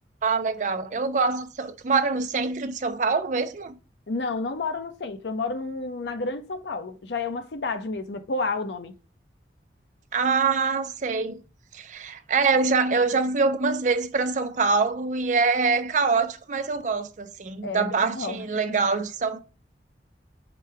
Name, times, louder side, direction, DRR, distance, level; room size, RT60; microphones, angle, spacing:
voice 1, 0.2-3.8 10.1-11.4 11.7-19.4, right 4 dB, 40° right, 0.4 m, -24 dB
voice 2, 4.1-8.9 17.6-18.8, left 3 dB, 75° left, 0.6 m, -31 dB
5.0 x 2.2 x 4.5 m
head